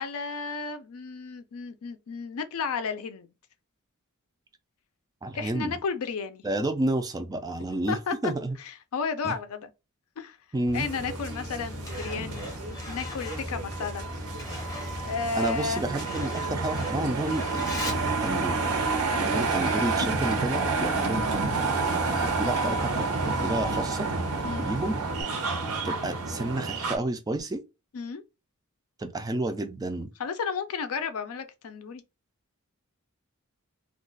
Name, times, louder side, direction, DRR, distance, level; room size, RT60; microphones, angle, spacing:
voice 1, 0.0-3.3 5.3-6.4 7.9-8.3 8.6-9.7 10.2-10.4 10.7-12.5 12.9-14.0 15.0-15.8 19.1-19.6 24.4-24.7 27.9-28.2 30.2-32.0, left 5 dB, 70° left, 0.4 m, -33 dB
voice 2, 5.2-5.8 6.4-8.6 9.2-9.3 10.5-10.9 15.4-18.6 19.2-21.7 22.2-24.1 24.6-24.9 25.8-27.6 29.0-30.1, right 2 dB, 15° right, 0.3 m, -31 dB
Truck, 10.7-25.2, left 1 dB, 15° left, 0.7 m, -38 dB
sound 1, 10.7-27.0, right 4 dB, 85° right, 0.7 m, -30 dB
2.4 x 2.3 x 3.7 m
head